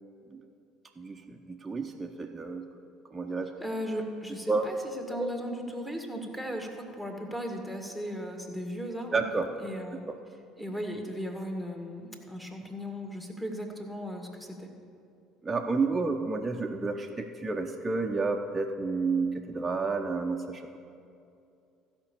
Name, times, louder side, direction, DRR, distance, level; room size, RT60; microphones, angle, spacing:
voice 1, 1.0-2.7 3.1-3.5 4.5-4.7 5.2-5.3 9.1-9.5 10.1-10.2 15.4-20.8, right 4 dB, 20° right, 1 dB, 0.8 m, -30 dB
voice 2, 3.6-4.8 5.1-9.3 9.6-10.0 10.6-14.7, equal, 10° left, 2 dB, 2.0 m, -36 dB
15.5 x 5.3 x 6.9 m, 2.5 s
figure-of-eight pair, 60°, 0 cm